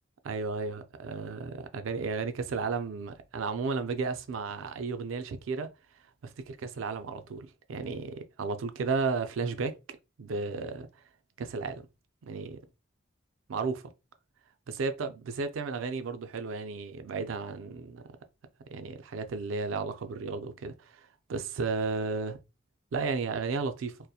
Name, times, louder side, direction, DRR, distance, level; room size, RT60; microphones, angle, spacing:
voice 1, 0.2-5.7 6.2-10.9 11.4-11.8 12.2-12.6 13.5-13.8 14.7-18.0 18.7-22.4 22.9-24.0, right 4 dB, 85° right, 0.4 m, -33 dB
2.7 x 2.1 x 2.3 m
head